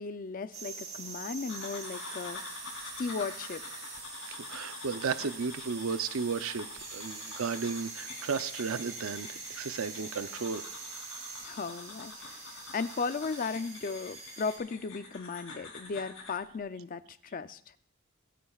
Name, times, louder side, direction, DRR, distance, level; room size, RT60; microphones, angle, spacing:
voice 1, 0.0-2.4 3.0-3.8 11.4-17.6, left 4 dB, 40° left, 12 dB, 0.5 m, -36 dB
sound 1, 0.5-14.6, right 4 dB, 35° right, 3.2 m, -44 dB
sound 2, 1.5-16.4, left 4 dB, 70° left, 3.3 m, -47 dB
voice 2, 4.2-10.6, right 5 dB, 85° right, 12 dB, 0.6 m, -34 dB
25.5 x 10.0 x 2.4 m, 0.65 s
head